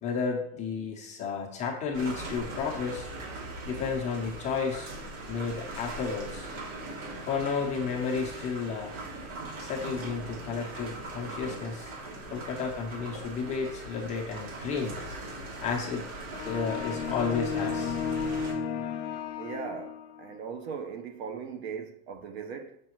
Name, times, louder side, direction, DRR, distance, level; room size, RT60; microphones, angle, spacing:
voice 1, 0.0-3.1 3.6-4.9 5.3-6.5 7.3-9.0 9.6-11.9 12.3-15.0 15.6-16.0 16.4-18.0, left 5 dB, 15° left, 0.8 m, -32 dB
sound 1, 1.9-18.5, right 2 dB, 70° right, 2.8 m, -40 dB
sound 2, 16.3-20.3, left 6 dB, 60° left, 0.8 m, -33 dB
voice 2, 19.4-22.8, right 6 dB, 45° right, 0.6 m, -39 dB
7.4 x 6.1 x 3.1 m
supercardioid pair, 175°, 43 cm